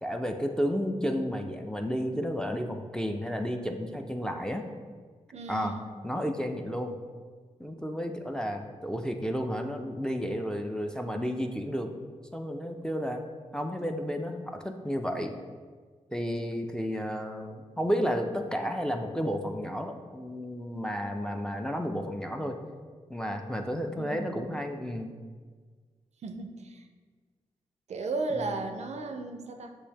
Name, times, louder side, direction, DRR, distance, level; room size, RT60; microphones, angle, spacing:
voice 1, 0.0-4.6 5.5-5.8 6.0-6.9 7.6-11.9 12.3-13.2 13.5-15.4 16.1-22.6 23.1-25.1 28.3-28.6, equal, 5° left, 4 dB, 0.4 m, -32 dB
voice 2, 5.3-5.9 24.0-24.6 26.2-26.8 27.9-29.8, right 3 dB, 60° right, 6 dB, 0.4 m, -35 dB
6.3 x 2.7 x 2.8 m, 1.6 s
cardioid pair, 55°, 13 cm